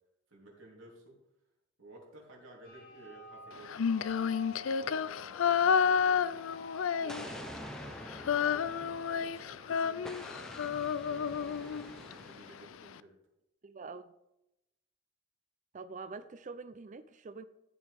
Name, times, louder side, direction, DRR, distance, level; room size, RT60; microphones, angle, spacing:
voice 1, 0.3-1.1 1.8-7.5 8.5-8.8 9.1-13.1, right 2 dB, 70° right, -2 dB, 3.3 m, -54 dB
sound 1, 2.6-12.4, left 1 dB, 45° left, 2.6 m, -52 dB
Female singing, 3.7-7.6 7.8-12.1, left 7 dB, 75° left, 0.4 m, -30 dB
Explosion, 7.1-9.5 10.0-12.6, equal, 5° left, 0.7 m, -47 dB
voice 2, 13.6-14.1 15.7-17.4, right 4 dB, 35° right, 13 dB, 0.4 m, -45 dB
13.5 x 8.0 x 3.5 m, 0.89 s
head